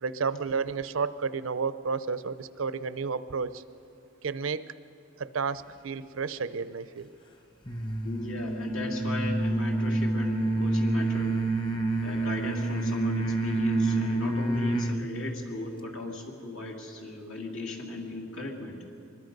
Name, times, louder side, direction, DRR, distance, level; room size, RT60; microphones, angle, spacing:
voice 1, 0.0-3.6 4.2-4.7 5.2-7.1, right 5 dB, 85° right, 14 dB, 0.7 m, -31 dB
sound 1, 7.7-15.0, right 2 dB, 25° left, 1.1 m, -28 dB
voice 2, 8.0-11.4 12.0-18.8, left 2 dB, 80° left, 0 dB, 2.4 m, -36 dB
23.5 x 21.0 x 5.3 m, 2.6 s
head